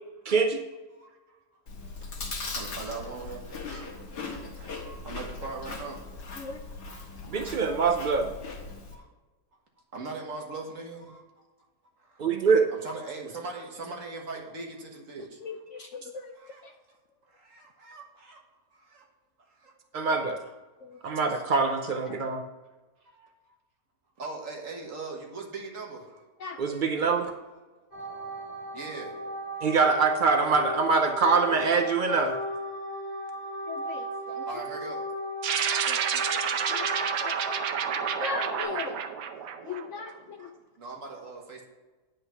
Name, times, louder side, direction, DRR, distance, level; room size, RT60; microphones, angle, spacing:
voice 1, 0.3-0.6 7.3-8.3 12.2-12.7 19.9-20.4 21.0-22.4 26.6-27.3 29.6-32.4, right 4 dB, 70° right, 5 dB, 0.4 m, -24 dB
voice 2, 0.9-1.5 2.6-3.9 4.2-6.4 6.9-7.6 8.9-9.1 9.9-11.4 12.0-12.3 12.7-16.7 17.3-18.4 18.7-19.1 19.4-19.7 21.0-21.5 23.0-23.3 24.2-26.2 26.7-26.9 28.7-29.2 29.6-29.7 34.3-35.1 35.4-35.5 39.4-39.9 40.4-40.5 40.8-41.6, right 3 dB, 50° right, 1 dB, 1.9 m, -41 dB
Chewing mastication, 1.7-9.0, left 3 dB, 90° left, 2.0 m, -39 dB
voice 3, 15.4-16.3 16.6-16.7 20.8-21.0 22.1-22.3 26.4-26.8 33.7-34.4 35.9-36.4 36.7-36.9 37.2-37.3 38.2-39.0 39.6-40.5, left 4 dB, 65° left, 6 dB, 0.8 m, -38 dB
sound 1, 27.9-38.6, equal, 30° left, 3.1 m, -36 dB
sound 2, 35.4-40.1, right 8 dB, 85° right, 1.3 m, -29 dB
9.8 x 5.3 x 5.7 m, 1.2 s
omnidirectional pair, 1.7 m